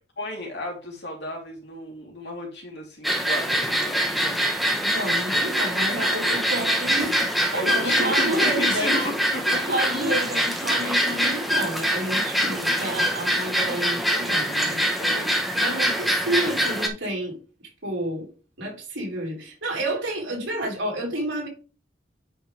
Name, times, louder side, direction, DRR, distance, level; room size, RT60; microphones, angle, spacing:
voice 1, 0.2-4.5 7.5-9.5 12.5-12.8 15.0-15.4, left 1 dB, 60° left, 3.5 m, -33 dB
sound 1, 3.0-16.9, equal, ahead, 1.1 m, -24 dB
voice 2, 4.8-9.0 9.5-14.8 15.6-17.4 17.8-18.3 18.6-21.5, right 1 dB, 80° right, 4.3 m, -29 dB
9.8 x 5.6 x 3.4 m
head